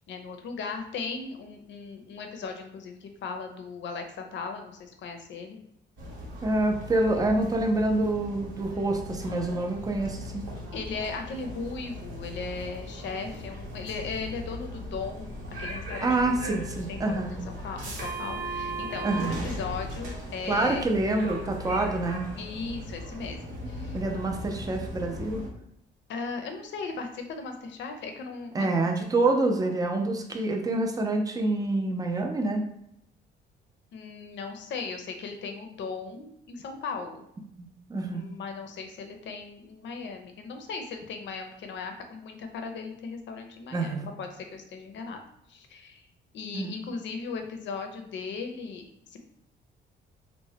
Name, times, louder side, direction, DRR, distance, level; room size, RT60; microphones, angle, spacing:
voice 1, 0.1-5.6 10.7-16.2 16.9-20.9 22.4-24.0 26.1-29.3 29.6-29.7 33.9-37.2 38.1-45.2 45.5-46.1 46.3-49.2, left 4 dB, 70° left, 5 dB, 0.5 m, -37 dB
sound 1, 6.0-25.5, equal, 85° right, 0.9 m, -38 dB
voice 2, 6.4-10.4 16.0-17.3 19.0-19.3 20.5-22.3 23.9-25.4 28.5-32.6 37.6-38.3 43.7-44.1 46.5-46.7, right 2 dB, 20° right, 2 dB, 0.5 m, -27 dB
3.0 x 2.1 x 2.7 m, 0.75 s
cardioid pair, 90°, 20 cm